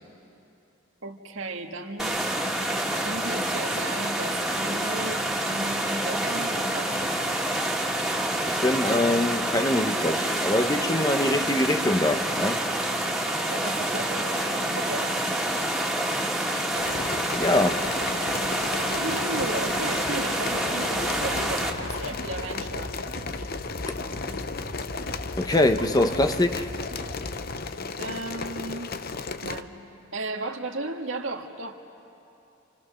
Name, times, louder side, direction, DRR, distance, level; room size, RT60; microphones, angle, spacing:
voice 1, 1.0-2.3 3.0-7.3 13.5-15.2 18.9-23.0 28.0-28.9 29.4-29.7 30.1-31.7, right 2 dB, 80° right, 1.7 m, -35 dB
sound 1, 2.0-21.7, right 1 dB, ahead, 2.0 m, -27 dB
voice 2, 8.4-12.6 17.3-18.0 25.4-26.7, left 1 dB, 20° left, 0.8 m, -24 dB
sound 2, 16.8-29.6, left 4 dB, 50° left, 0.7 m, -35 dB
sound 3, 20.9-27.6, left 1 dB, 80° left, 2.6 m, -39 dB
29.0 x 28.5 x 6.4 m
head